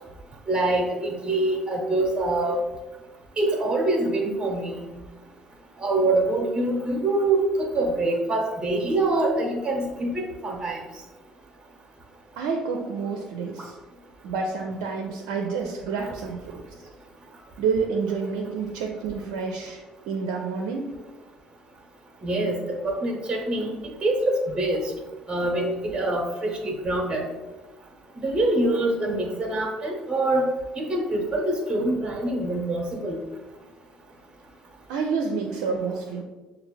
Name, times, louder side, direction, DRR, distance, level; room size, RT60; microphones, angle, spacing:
voice 1, 0.5-2.6 3.4-4.9 5.8-10.8 13.6-13.7 22.2-22.6 22.8-24.8 25.3-27.2 28.2-30.5 30.7-33.2, right 2 dB, 30° right, 1 dB, 0.9 m, -25 dB
voice 2, 12.4-13.8 14.2-16.6 17.6-20.9 34.9-36.2, right 5 dB, 75° right, 2 dB, 0.4 m, -29 dB
6.5 x 2.4 x 3.1 m, 1.2 s
hypercardioid pair, 60°, 3 cm